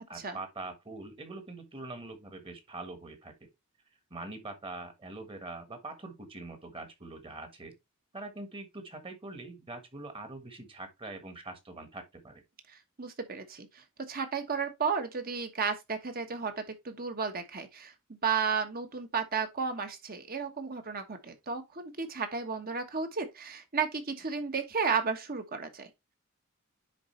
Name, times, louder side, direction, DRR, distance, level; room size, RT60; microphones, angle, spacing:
voice 1, 0.0-3.5 4.1-7.7 8.1-12.4, right 2 dB, 25° right, 1.4 m, -43 dB
voice 2, 12.7-25.9, right 5 dB, 40° right, 1.2 m, -33 dB
9.9 x 4.0 x 3.2 m
head